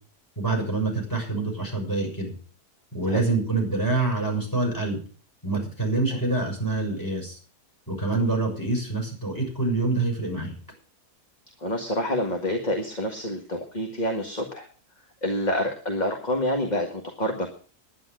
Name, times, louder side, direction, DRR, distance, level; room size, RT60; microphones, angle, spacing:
voice 1, 0.4-2.3 2.9-5.0 5.4-7.4 7.9-10.5, right 3 dB, 10° left, 0 dB, 6.7 m, -26 dB
voice 2, 11.6-14.7 15.2-17.5, left 1 dB, 25° left, 2 dB, 1.8 m, -27 dB
11.0 x 10.5 x 7.6 m, 0.41 s
omnidirectional pair, 1.7 m